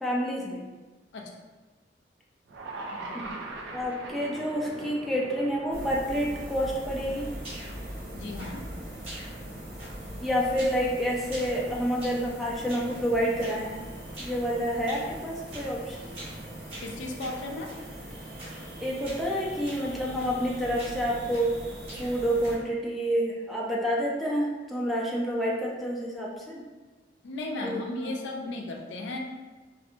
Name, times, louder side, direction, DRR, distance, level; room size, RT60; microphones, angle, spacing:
voice 1, 0.0-0.6 3.1-3.4 3.7-7.3 10.2-13.7 14.2-16.0 18.8-21.6 22.0-26.6 27.6-28.1, equal, ahead, -5 dB, 0.4 m, -28 dB
sound 1, 2.5-8.7, right 2 dB, 80° right, 0.4 m, -42 dB
voice 2, 2.9-3.2 8.1-8.6 16.8-17.7 27.2-29.2, left 2 dB, 85° left, 1 dB, 0.4 m, -36 dB
sound 2, 5.7-22.6, right 1 dB, 60° right, 0.8 m, -41 dB
sound 3, 7.4-7.9 8.4-8.8 9.0-9.5 9.8-10.2 10.6-10.9 11.2-12.3 12.7-13.0 13.4-13.6 14.1-14.4 14.9-15.1 15.5-15.7 16.1-16.4 16.7-17.8 18.4-18.7 19.0-19.3 19.6-19.9 20.2-20.5 20.8-21.6 21.8-22.7, right 1 dB, 35° right, 1.0 m, -45 dB
2.5 x 2.4 x 2.7 m, 1.3 s
head